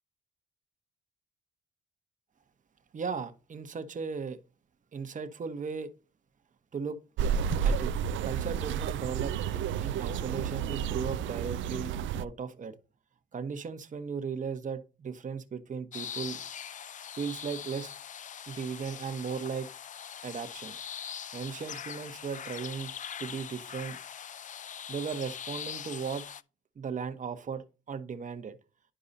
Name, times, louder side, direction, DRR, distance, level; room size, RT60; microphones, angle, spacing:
voice 1, 2.9-4.4 4.9-5.9 6.7-7.0 7.6-7.9 8.2-9.3 9.8-12.7 13.3-16.4 17.1-17.9 18.5-19.7 20.2-20.7 21.3-22.9 23.2-24.0 24.9-26.2 26.8-28.6, right 6 dB, 40° right, 1.1 m, -36 dB
sound 1, 7.2-12.2, right 7 dB, 75° right, 0.5 m, -31 dB
sound 2, 15.9-26.4, left 8 dB, 40° left, 0.4 m, -42 dB
11.0 x 4.7 x 2.7 m
cardioid pair, 90°, 20 cm